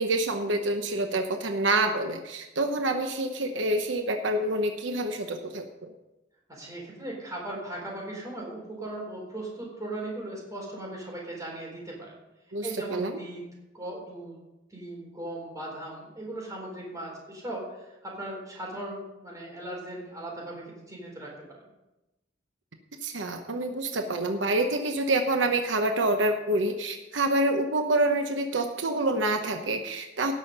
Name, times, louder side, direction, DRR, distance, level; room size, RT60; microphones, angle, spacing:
voice 1, 0.0-5.9 12.5-13.1 23.0-30.3, right 2 dB, 80° right, 5 dB, 1.0 m, -27 dB
voice 2, 6.5-12.2 12.6-13.5 13.7-14.4 14.7-21.3, right 1 dB, 20° right, -2 dB, 4.2 m, -38 dB
17.5 x 6.4 x 5.5 m, 0.98 s
head